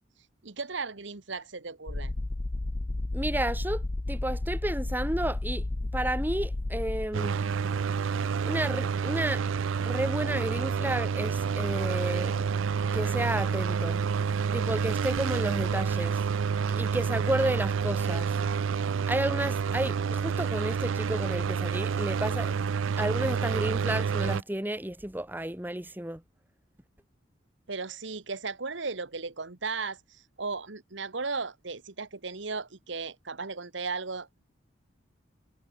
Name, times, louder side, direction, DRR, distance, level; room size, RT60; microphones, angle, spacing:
voice 1, 0.4-2.1 27.7-34.4, right 4 dB, 70° right, 1.5 m, -36 dB
sound 1, 1.9-7.2, left 2 dB, 30° left, 0.6 m, -32 dB
voice 2, 3.1-3.8 4.1-5.6 5.9-7.4 8.4-9.4 9.8-12.5 12.9-14.0 14.5-16.2 16.8-18.3 19.1-22.6 23.0-26.2, right 1 dB, 10° right, 1.1 m, -31 dB
sound 2, 7.1-24.4, right 6 dB, 85° right, 0.4 m, -28 dB
head